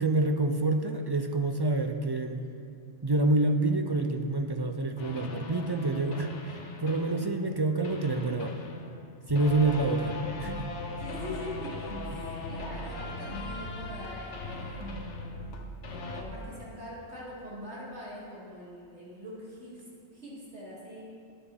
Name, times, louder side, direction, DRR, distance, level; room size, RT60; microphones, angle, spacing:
voice 1, 0.0-2.4 3.0-8.6 9.3-10.1 10.4-10.7, right 2 dB, 40° right, 5 dB, 0.3 m, -27 dB
sound 1, 5.0-7.5 7.8-16.2, left 2 dB, 80° left, 1.3 m, -39 dB
voice 2, 9.6-10.0 11.0-15.3 15.8-21.0, left 1 dB, 70° right, -8 dB, 3.0 m, -43 dB
20.5 x 7.3 x 3.5 m, 2.6 s
omnidirectional pair, 1.2 m